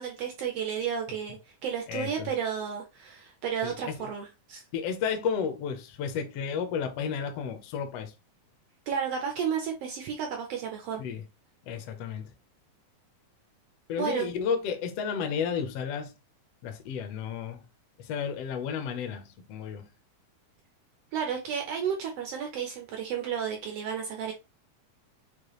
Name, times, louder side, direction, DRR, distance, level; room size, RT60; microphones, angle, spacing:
voice 1, 0.0-4.6 8.9-11.0 14.0-14.3 21.1-24.3, right 7 dB, 90° right, 1.3 m, -32 dB
voice 2, 1.9-2.3 3.6-4.1 4.7-8.1 11.0-11.2 11.7-12.3 13.9-16.1 16.6-17.6 18.0-19.9, left 6 dB, 75° left, 1.5 m, -32 dB
6.5 x 2.3 x 3.0 m
omnidirectional pair, 3.5 m